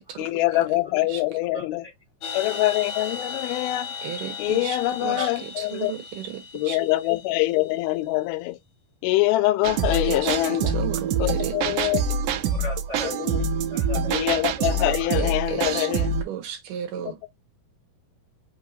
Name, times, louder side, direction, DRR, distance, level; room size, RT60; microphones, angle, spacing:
voice 1, 0.2-1.9 2.3-3.9 4.4-5.9 6.5-8.6 9.0-10.8 11.2-12.1 13.0-13.5 14.1-16.1 17.1-17.3, left 17 dB, 85° left, 2.4 m, -24 dB
sound 1, 2.2-7.8, left 6 dB, 65° left, 2.3 m, -36 dB
voice 2, 4.0-6.8 9.9-11.9 15.2-17.3, right 9 dB, 70° right, 2.3 m, -34 dB
sound 2, 9.6-16.2, right 4 dB, 90° right, 1.7 m, -25 dB
voice 3, 12.5-13.1 13.7-14.1 14.8-14.9, left 2 dB, 35° right, 1.1 m, -35 dB
5.7 x 2.8 x 2.5 m
omnidirectional pair, 4.3 m